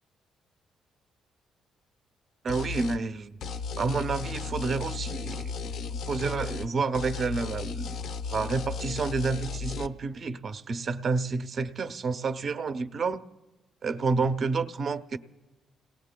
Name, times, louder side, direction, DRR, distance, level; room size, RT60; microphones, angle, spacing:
voice 1, 2.4-3.4 3.8-7.9 8.3-13.2 13.8-15.2, right 4 dB, 50° right, 0.7 m, -29 dB
sound 1, 2.5-3.0 3.4-6.7 6.9-9.9, left 5 dB, 75° left, 0.7 m, -35 dB
30.0 x 18.5 x 2.2 m
cardioid pair, 90°, 0 cm